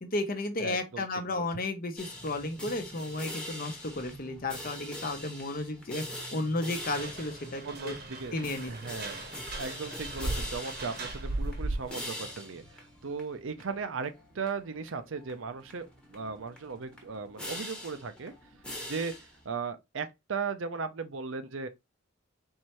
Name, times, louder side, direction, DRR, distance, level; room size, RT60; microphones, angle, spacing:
voice 1, 0.0-6.0 6.3-8.0 8.3-8.7, left 2 dB, 45° left, 0.8 m, -33 dB
voice 2, 0.6-1.6 7.6-8.3 8.7-9.3 9.6-18.3 18.8-21.7, right 5 dB, 70° right, 0.6 m, -37 dB
sound 1, 2.0-19.4, left 1 dB, 5° left, 1.0 m, -44 dB
sound 2, 6.8-12.0, right 2 dB, 50° right, 1.0 m, -37 dB
4.5 x 3.2 x 3.0 m
head